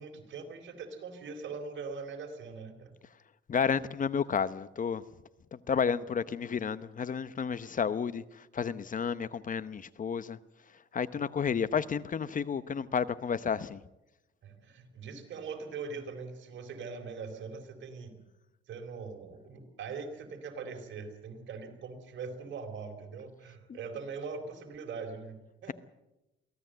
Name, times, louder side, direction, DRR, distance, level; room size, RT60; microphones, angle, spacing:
voice 1, 0.0-3.0 11.1-11.2 11.5-11.7 14.4-18.2 18.7-25.7, right 5 dB, 70° right, 4.2 m, -42 dB
voice 2, 3.5-5.0 5.7-8.2 8.5-10.4 10.9-13.8, left 6 dB, 40° left, 0.9 m, -31 dB
24.0 x 16.5 x 7.9 m
cardioid pair, 90°, 20 cm